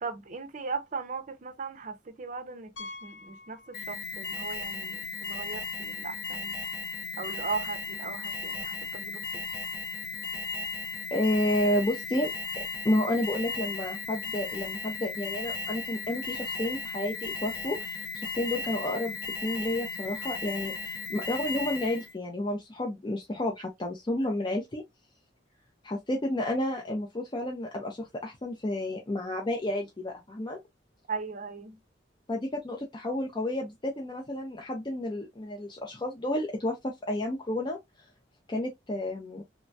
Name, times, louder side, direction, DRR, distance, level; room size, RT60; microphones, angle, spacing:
voice 1, 0.0-6.6 7.2-9.4 31.1-31.8, right 4 dB, 45° right, 0.6 m, -38 dB
Piano, 2.8-4.4 4.6-4.8 5.4-5.5 5.7-5.8 7.9-8.0, left 3 dB, 80° left, 0.7 m, -46 dB
Alarm, 3.7-22.1, left 4 dB, 55° left, 1.0 m, -36 dB
voice 2, 11.1-19.2 19.4-24.8 25.8-30.6 32.3-37.8 38.5-39.4, left 1 dB, 25° left, 0.5 m, -31 dB
3.1 x 2.3 x 2.6 m
head